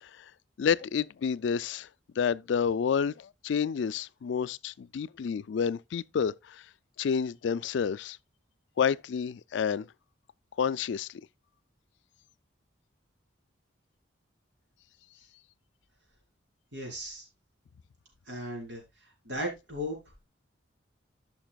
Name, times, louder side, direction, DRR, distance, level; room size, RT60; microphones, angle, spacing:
voice 1, 0.6-1.9 2.2-6.6 7.0-8.2 8.8-9.9 10.6-11.2, left 7 dB, 70° left, 0.3 m, -29 dB
voice 2, 16.7-17.3 18.3-18.8 19.3-20.0, equal, 65° right, 3.9 m, -36 dB
13.5 x 5.9 x 2.3 m
head